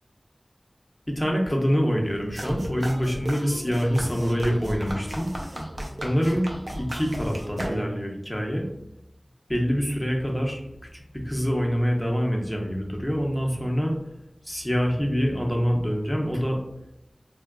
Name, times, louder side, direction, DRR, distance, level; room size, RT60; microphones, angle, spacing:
voice 1, 1.1-5.3 6.0-6.4 6.8-8.7 9.5-10.6 10.9-14.0 14.4-16.6, equal, 10° left, 0 dB, 0.8 m, -25 dB
sound 1, 2.3-8.2, right 1 dB, 60° right, 0.6 m, -35 dB
3.4 x 2.4 x 2.3 m, 0.85 s
wide cardioid pair, 40°, 0 cm